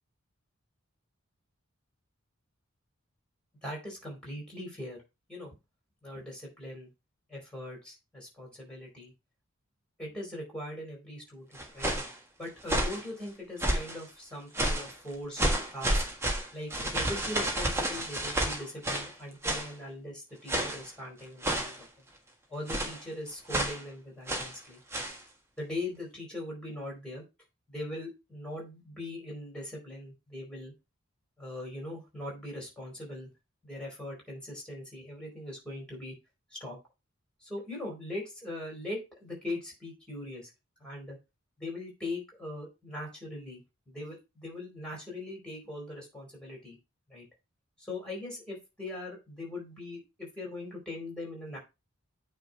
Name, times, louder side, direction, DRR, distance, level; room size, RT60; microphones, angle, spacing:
voice 1, 3.6-5.0 5.3-5.5 6.0-6.9 7.3-9.1 10.0-11.9 12.4-15.4 15.7-16.0 16.5-21.9 22.5-24.8 25.6-27.2 27.7-30.7 31.4-33.3 33.6-36.1 36.5-36.8 37.4-40.5 40.8-41.2 41.6-46.8 47.1-47.3 47.8-51.6, left 1 dB, 5° left, -1 dB, 4.3 m, -40 dB
sound 1, 11.5-12.1 12.6-13.0 13.6-14.0 14.5-14.9 15.4-19.1 19.4-19.7 20.5-20.9 21.4-21.8 22.7-23.0 23.5-23.8 24.3-24.6 24.9-25.2, right 1 dB, 10° right, 1.5 m, -30 dB
9.1 x 3.6 x 4.6 m, 0.25 s
head